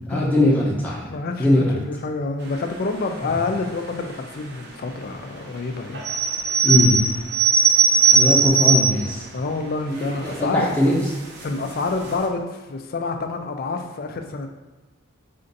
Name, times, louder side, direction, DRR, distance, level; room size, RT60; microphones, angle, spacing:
voice 1, 0.1-1.8 6.6-7.0 8.1-9.3 10.4-11.0, left 1 dB, 5° left, -5 dB, 0.7 m, -20 dB
voice 2, 1.1-6.0 8.2-8.4 9.3-10.9 11.4-14.5, left 3 dB, 45° left, 5 dB, 0.4 m, -28 dB
sound 1, 5.9-9.1 9.7-9.8 10.0-10.4 11.1-11.4 11.8-11.9 12.1-12.2, right 5 dB, 50° right, 0.6 m, -18 dB
4.3 x 2.5 x 3.9 m, 1.2 s
head